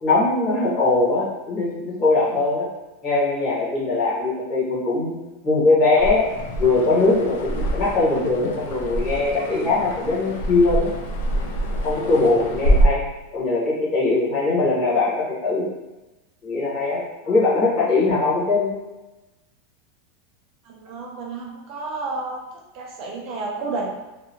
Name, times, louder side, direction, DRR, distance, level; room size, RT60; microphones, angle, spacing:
voice 1, 0.0-2.7 3.0-5.2 5.4-6.3 6.6-10.9 11.8-13.0 13.3-15.6 16.4-18.7, left 3 dB, 25° left, -8 dB, 0.9 m, -21 dB
sound 1, 6.0-12.9, right 1 dB, 80° left, 0.4 m, -25 dB
voice 2, 20.6-23.9, right 3 dB, 40° right, -1 dB, 0.3 m, -31 dB
2.7 x 2.0 x 2.7 m, 1.1 s
supercardioid pair, 175°, 0 cm